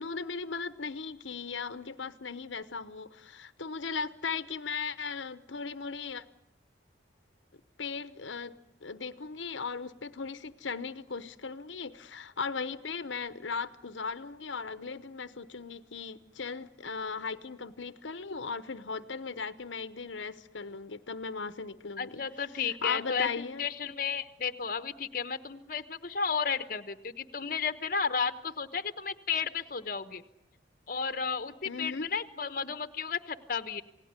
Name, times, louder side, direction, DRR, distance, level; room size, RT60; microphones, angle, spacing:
voice 1, 0.0-6.2 7.8-8.5 8.8-22.2 22.6-23.6 31.6-32.1, left 5 dB, 90° left, 13 dB, 1.0 m, -37 dB
voice 2, 22.0-30.2 30.9-33.8, left 6 dB, 50° left, 11 dB, 1.1 m, -33 dB
28.0 x 18.0 x 9.6 m, 0.82 s
head